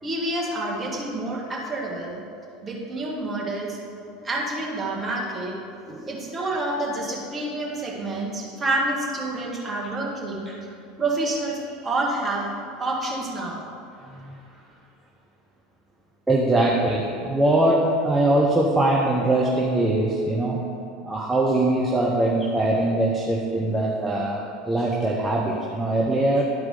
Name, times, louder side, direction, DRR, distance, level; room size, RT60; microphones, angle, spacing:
voice 1, 0.0-2.2 2.6-3.8 4.2-5.6 6.1-10.5 11.0-12.5 12.8-13.6, right 2 dB, 25° right, -3 dB, 1.9 m, -28 dB
voice 2, 14.1-14.4 16.3-20.6 21.0-26.4, right 1 dB, 10° right, -4 dB, 0.9 m, -22 dB
12.0 x 4.7 x 3.8 m, 2.6 s
figure-of-eight pair, 75°, 0 cm